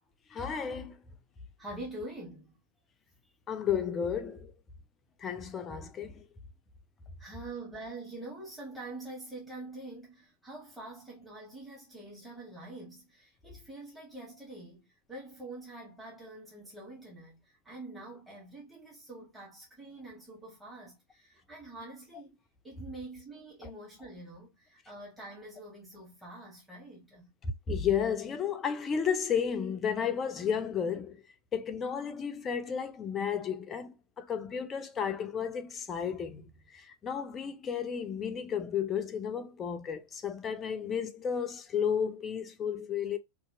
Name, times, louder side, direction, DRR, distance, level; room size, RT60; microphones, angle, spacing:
voice 1, 0.3-1.0 3.5-4.5 5.2-6.2 27.4-31.2 31.5-43.2, left 7 dB, 25° left, 0.5 m, -33 dB
voice 2, 1.6-2.6 7.2-17.4 17.6-22.4 22.6-27.3, right 2 dB, 5° right, 1.2 m, -45 dB
2.8 x 2.5 x 2.4 m
figure-of-eight pair, 90°, 0 cm